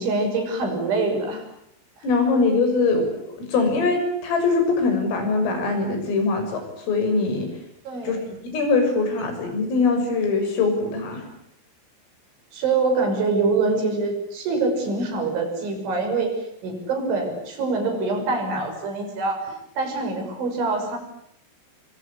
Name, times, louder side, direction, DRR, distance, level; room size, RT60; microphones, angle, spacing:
voice 1, 0.0-1.4 7.9-8.1 12.5-21.0, right 3 dB, 70° right, 5 dB, 8.5 m, -25 dB
voice 2, 2.0-3.1 3.4-7.5 8.1-8.2 8.4-11.2, left 3 dB, 85° left, 6 dB, 9.1 m, -22 dB
27.5 x 24.5 x 8.5 m, 0.77 s
omnidirectional pair, 5.7 m